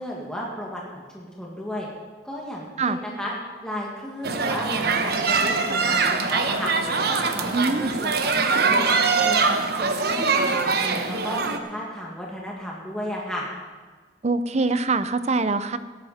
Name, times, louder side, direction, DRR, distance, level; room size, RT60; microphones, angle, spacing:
voice 1, 0.0-1.9 2.2-3.3 3.6-6.7 7.3-8.9 9.2-13.4, equal, 5° left, -4 dB, 2.0 m, -34 dB
sound 1, 4.2-11.6, right 4 dB, 60° right, 1.0 m, -23 dB
voice 2, 7.5-7.9 14.2-15.8, right 3 dB, 40° right, 12 dB, 0.6 m, -23 dB
17.0 x 12.5 x 4.3 m, 1.4 s
head